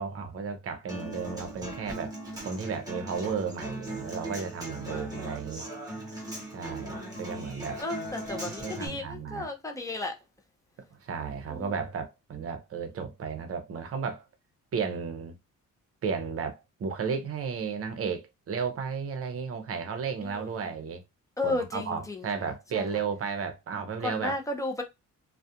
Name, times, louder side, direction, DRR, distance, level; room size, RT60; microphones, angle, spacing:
voice 1, 0.0-2.2 2.4-5.7 6.5-7.8 8.5-9.5 10.9-14.2 14.7-15.4 16.0-21.0 21.4-24.4, right 6 dB, 45° right, 0.6 m, -34 dB
Human voice / Acoustic guitar, 0.9-8.9, right 1 dB, 10° right, 0.9 m, -39 dB
voice 2, 4.9-5.4 6.7-7.2 7.8-10.2 11.5-11.7 20.2-20.7 21.4-22.9 24.0-24.8, left 2 dB, 10° left, 0.4 m, -34 dB
2.4 x 2.1 x 2.7 m
wide cardioid pair, 165°, 32 cm